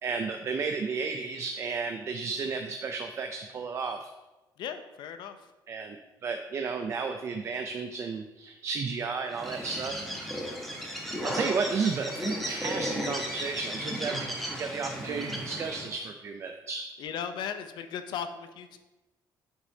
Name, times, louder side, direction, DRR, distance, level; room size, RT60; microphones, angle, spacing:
voice 1, 0.0-4.1 5.7-6.0 6.2-10.0 11.2-16.9, right 5 dB, 35° right, 5 dB, 0.4 m, -33 dB
voice 2, 4.6-5.5 17.0-18.8, left 8 dB, 70° left, 9 dB, 0.6 m, -37 dB
Bird, 9.3-15.9, equal, ahead, 1.0 m, -35 dB
7.9 x 6.4 x 2.7 m, 1.1 s
cardioid pair, 160°, 8 cm